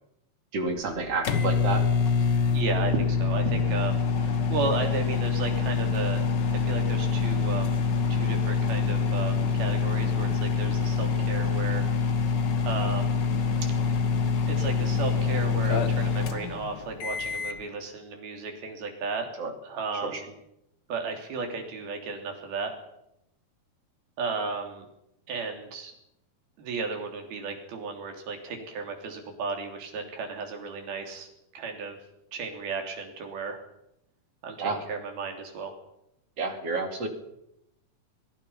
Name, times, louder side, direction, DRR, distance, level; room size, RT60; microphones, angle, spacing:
voice 1, 0.5-1.8 19.4-19.5 20.0-20.2 34.6-34.8 36.4-37.1, right 3 dB, 45° right, 5 dB, 3.5 m, -30 dB
sound 1, 0.7-17.6, left 5 dB, 60° left, 1.1 m, -26 dB
voice 2, 2.5-7.8 8.1-11.9 12.6-13.2 13.6-13.7 14.5-19.3 19.6-20.3 20.9-22.7 24.2-24.9 25.3-25.9 26.6-31.3 31.5-32.0 32.3-33.6 34.4-35.7, right 4 dB, 85° right, 4 dB, 5.4 m, -34 dB
23.0 x 22.0 x 5.8 m, 0.82 s
omnidirectional pair, 4.2 m